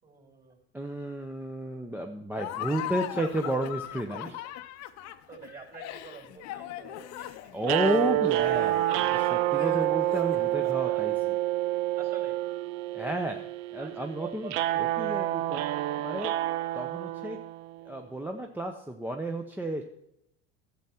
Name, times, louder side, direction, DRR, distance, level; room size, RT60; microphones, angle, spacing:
voice 1, 0.0-0.6 5.3-7.9 9.1-9.6 10.6-11.1 12.0-12.4 13.7-15.0, right 5 dB, 30° right, 1 dB, 3.5 m, -47 dB
voice 2, 0.7-4.4 7.5-11.1 12.9-16.3 16.7-17.4 17.8-19.8, right 1 dB, 5° right, 3 dB, 0.7 m, -32 dB
Laughter, 2.3-10.6, left 13 dB, 55° left, 0.7 m, -40 dB
sound 1, 7.6-17.9, right 15 dB, 70° right, 0.5 m, -28 dB
11.5 x 7.5 x 4.3 m, 0.79 s
hypercardioid pair, 90°, 32 cm